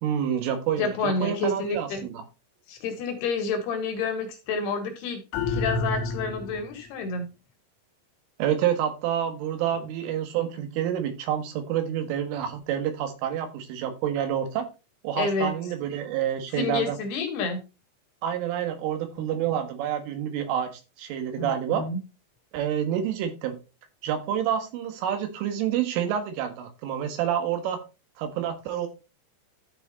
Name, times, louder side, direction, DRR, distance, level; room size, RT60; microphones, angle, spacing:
voice 1, 0.0-2.2 8.4-14.7 15.0-17.0 18.2-21.9 22.5-23.6 24.0-27.8 28.2-28.9, right 9 dB, 75° right, 7 dB, 3.9 m, -28 dB
voice 2, 0.8-2.1 2.7-5.2 5.5-7.3 15.2-15.5 16.6-17.6 19.2-19.5 21.4-22.0, left 4 dB, 65° left, 6 dB, 2.8 m, -29 dB
sound 1, 5.3-6.8, left 3 dB, 80° left, 3.5 m, -29 dB
13.0 x 5.0 x 4.0 m, 0.29 s
omnidirectional pair, 5.9 m